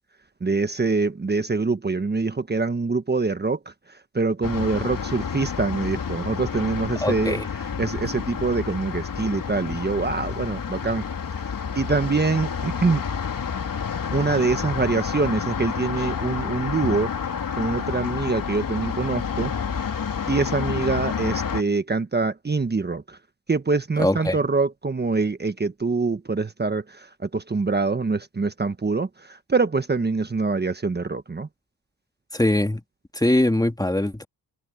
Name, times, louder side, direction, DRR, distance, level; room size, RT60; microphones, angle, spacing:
voice 1, 0.4-11.1 11.7-13.0 14.1-19.5 20.3-23.2 23.5-31.5, right 4 dB, 20° right, 1.4 m, -25 dB
sound 1, 4.4-21.6, left 6 dB, 45° left, 3.5 m, -29 dB
voice 2, 7.0-7.4 24.0-24.4 32.3-32.8 33.1-34.3, left 1 dB, 10° left, 1.8 m, -22 dB
cardioid pair, 75°, 46 cm